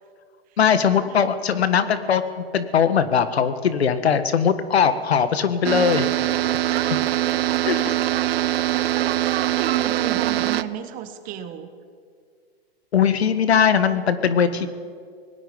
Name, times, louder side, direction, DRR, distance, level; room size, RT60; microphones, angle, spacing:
voice 1, 0.6-6.1 7.7-7.8 12.9-14.7, left 7 dB, 85° left, 12 dB, 1.7 m, -20 dB
sound 1, 5.6-10.6, right 14 dB, 70° right, 0.8 m, -22 dB
voice 2, 6.7-8.5 8.7-11.7, right 10 dB, 25° right, 9 dB, 1.4 m, -33 dB
26.0 x 19.5 x 5.3 m, 2.1 s
hypercardioid pair, 145°, 31 cm